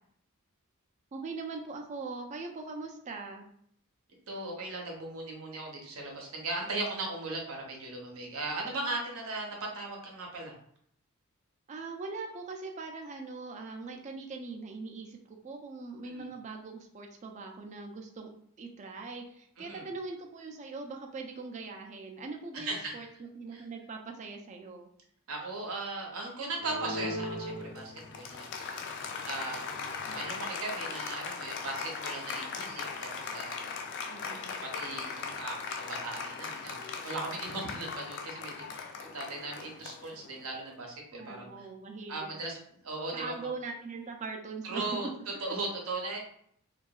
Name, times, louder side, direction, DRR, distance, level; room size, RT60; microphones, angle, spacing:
voice 1, 1.1-3.5 11.7-18.3 18.6-23.1 23.4-24.9 29.8-30.2 34.1-34.6 41.2-42.3 43.1-44.8, right 4 dB, 35° right, 3 dB, 0.3 m, -41 dB
voice 2, 4.3-10.5 16.0-16.3 19.6-19.9 22.5-23.1 23.5-23.6 25.3-28.8 29.2-33.6 34.5-41.7 42.1-43.3 44.6-45.1 45.4-46.2, right 2 dB, 70° right, 0 dB, 0.7 m, -38 dB
Applause, 26.5-40.6, left 4 dB, 55° left, 0.3 m, -39 dB
2.7 x 2.3 x 2.3 m, 0.67 s
head